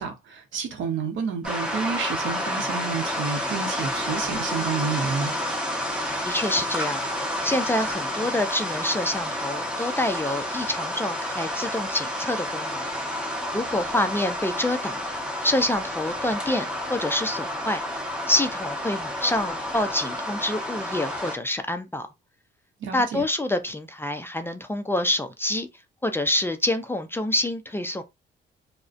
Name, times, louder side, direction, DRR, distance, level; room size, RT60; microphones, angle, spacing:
voice 1, 0.0-5.3 22.8-23.2, right 6 dB, 75° right, 0.7 m, -30 dB
sound 1, 1.4-21.4, left 1 dB, 5° right, 1.1 m, -30 dB
voice 2, 6.2-7.0 7.4-12.9 13.5-15.0 15.4-17.8 18.3-22.1 22.9-25.7 26.0-28.0, left 1 dB, 10° left, 0.4 m, -27 dB
2.3 x 2.1 x 2.5 m
cardioid pair, 90°, 20 cm